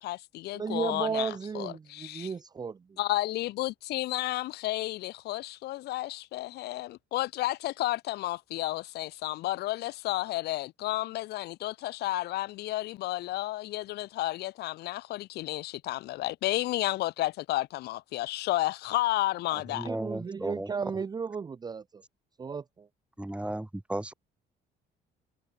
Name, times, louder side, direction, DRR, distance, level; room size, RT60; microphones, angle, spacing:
voice 1, 0.0-2.3 3.0-19.9, left 16 dB, 75° left, 1.0 m, -32 dB
voice 2, 0.5-3.0 19.5-19.6 19.8-22.0 22.4-22.9, right 5 dB, 25° right, 0.6 m, -34 dB
voice 3, 19.7-20.7 23.2-24.1, right 1 dB, 5° right, 2.8 m, -35 dB
cardioid pair, 110°, 17 cm